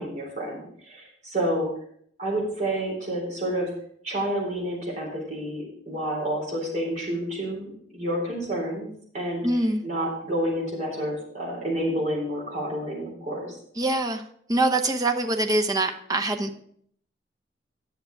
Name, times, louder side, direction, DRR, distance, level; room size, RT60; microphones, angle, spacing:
voice 1, 0.0-1.7 2.2-3.7 4.0-8.9 9.1-9.5 9.8-13.5, right 1 dB, 45° right, -3 dB, 3.9 m, -29 dB
voice 2, 9.4-9.8 13.8-14.2 14.5-16.6, right 2 dB, 20° right, 4 dB, 0.9 m, -24 dB
11.0 x 6.9 x 4.6 m, 0.65 s
head